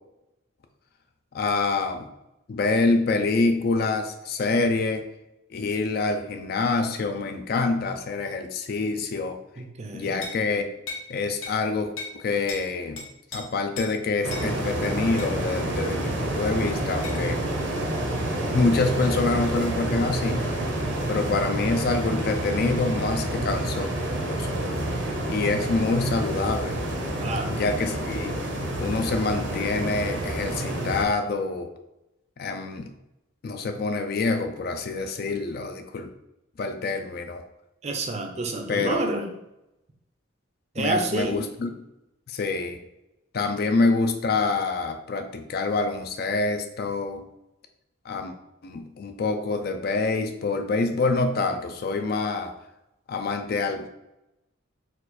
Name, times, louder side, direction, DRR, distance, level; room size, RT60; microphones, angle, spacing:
voice 1, 1.3-2.1 2.5-5.0 5.5-9.4 9.9-10.7 11.1-13.0 13.3-17.4 18.5-20.5 21.1-23.9 24.3-24.6 25.3-26.8 27.5-28.4 28.8-31.7 32.4-32.9 33.4-36.1 36.6-37.4 38.7-39.0 40.8-41.7 42.3-42.8 43.3-47.2 48.1-48.3 48.6-52.5 53.1-53.9, left 3 dB, 50° left, 7 dB, 0.4 m, -26 dB
voice 2, 9.6-10.2 27.2-27.6 37.8-39.3 40.7-41.4, right 2 dB, 35° right, 4 dB, 0.5 m, -28 dB
sound 1, 10.2-10.4 10.9-11.1 11.4-11.6 12.0-12.2 12.5-12.6 13.0-13.4 13.8-13.9 14.3-14.5 15.2-15.3 17.0-17.2, left 4 dB, 80° left, 1.0 m, -36 dB
sound 2, 14.2-31.0, right 1 dB, 60° right, 0.8 m, -28 dB
4.4 x 2.4 x 4.0 m, 0.89 s
head